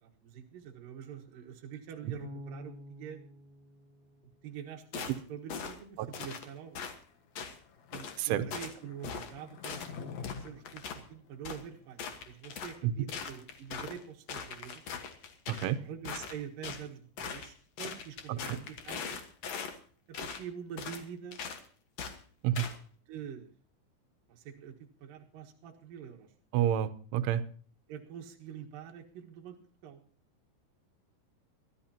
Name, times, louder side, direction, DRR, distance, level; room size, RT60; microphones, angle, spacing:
voice 1, 0.0-3.2 4.4-6.9 7.9-14.9 15.8-19.2 20.1-21.4 23.1-23.5 24.3-26.3 27.9-29.6 29.8-30.0, right 8 dB, 60° right, 1 dB, 2.7 m, -45 dB
Bass guitar, 2.2-5.2, equal, 10° left, 6.4 m, -49 dB
sound 1, 4.9-5.2 5.5-5.8 6.1-6.5 6.8-6.9 7.4-7.6 7.9-8.2 8.5-8.7 9.0-9.3 9.6-9.9 10.2-11.0 11.4-11.6 12.0-12.8 13.1-14.0 14.3-15.7 16.0-16.8 17.2-17.5 17.8-19.8 20.1-20.4 20.8-21.0 21.3-21.6 22.0-22.2 22.6-22.8, left 6 dB, 85° left, 1.5 m, -40 dB
Skateboard, 7.0-12.2, left 7 dB, 65° left, 1.8 m, -49 dB
voice 2, 15.5-15.8 18.5-18.6 22.4-22.6 26.5-27.4, right 11 dB, 90° right, 11 dB, 3.3 m, -28 dB
23.5 x 14.0 x 2.9 m, 0.42 s
omnidirectional pair, 5.4 m